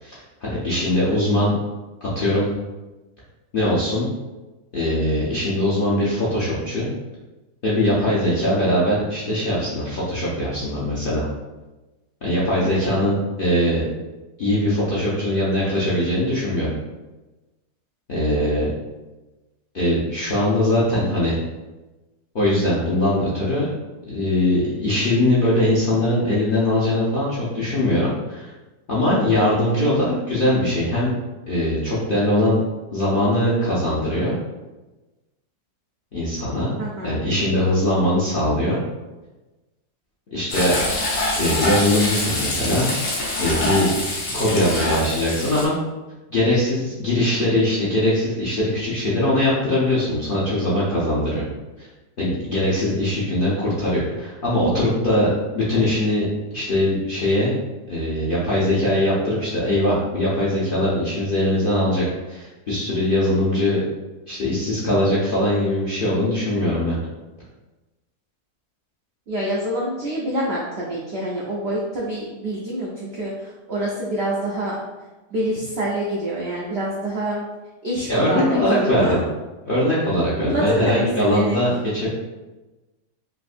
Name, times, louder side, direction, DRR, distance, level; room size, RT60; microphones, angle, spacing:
voice 1, 0.0-1.5 2.0-2.5 3.5-4.1 4.7-6.9 7.6-11.3 12.2-13.8 14.4-16.7 18.1-18.7 19.7-21.3 22.3-23.7 24.1-28.5 28.9-31.1 31.5-32.6 32.9-34.3 36.1-36.7 37.0-38.8 40.3-40.7 41.4-42.9 43.4-43.9 44.3-45.7 46.3-51.4 51.8-51.9 52.2-57.5 57.9-63.8 64.3-67.0 78.1-79.2 79.6-82.1, left 1 dB, 55° left, -8 dB, 0.6 m, -21 dB
voice 2, 12.6-13.0 36.8-37.1 69.3-74.7 75.3-77.5 77.8-79.2 80.5-81.6, right 1 dB, 75° right, -4 dB, 0.5 m, -26 dB
Frying (food), 40.5-45.7, left 2 dB, 70° left, 1.3 m, -25 dB
3.5 x 2.5 x 2.4 m, 1.1 s
omnidirectional pair, 1.7 m